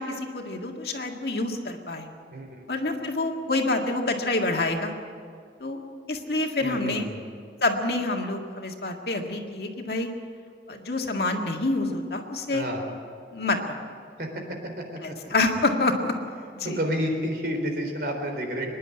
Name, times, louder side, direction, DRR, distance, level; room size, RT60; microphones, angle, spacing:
voice 1, 0.0-2.1 2.7-4.9 5.6-5.8 6.1-7.1 7.6-10.1 10.7-12.6 13.3-13.7 15.0-16.1 16.6-16.8, left 2 dB, 60° left, 2 dB, 2.0 m, -27 dB
voice 2, 2.3-2.6 6.6-7.3 12.5-12.8 14.2-14.3 14.8-14.9 15.2-15.3 16.6-18.7, equal, 55° right, 3 dB, 3.8 m, -30 dB
25.0 x 11.0 x 9.8 m, 2.2 s
head